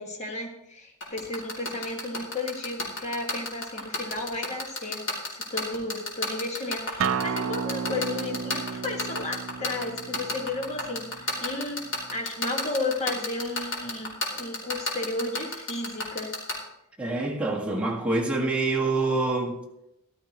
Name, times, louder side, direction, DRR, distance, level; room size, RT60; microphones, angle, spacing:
voice 1, 0.0-11.8 12.1-16.4, left 2 dB, 35° left, 1.8 m, -33 dB
sound 1, 1.0-16.5, left 2 dB, 60° left, 2.9 m, -29 dB
Acoustic guitar, 7.0-12.2, right 6 dB, 65° right, 0.5 m, -33 dB
voice 2, 17.0-19.6, right 2 dB, 5° right, 1.7 m, -26 dB
14.0 x 12.0 x 3.0 m
head